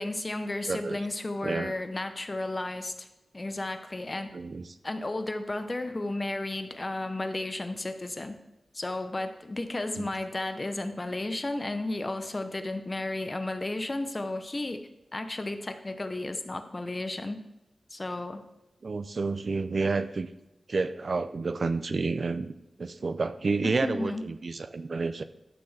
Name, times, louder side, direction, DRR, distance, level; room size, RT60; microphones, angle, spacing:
voice 1, 0.0-3.1 3.3-4.3 4.8-8.4 8.7-14.8 15.1-17.4 17.9-18.4 23.6-24.2, left 2 dB, 30° left, 8 dB, 0.9 m, -33 dB
voice 2, 0.7-1.0 1.4-1.7 4.3-4.8 10.0-10.1 18.8-20.3 20.7-22.5 22.8-25.2, right 4 dB, 55° right, 11 dB, 0.5 m, -30 dB
12.0 x 6.8 x 3.4 m, 0.92 s
wide cardioid pair, 80°, 0 cm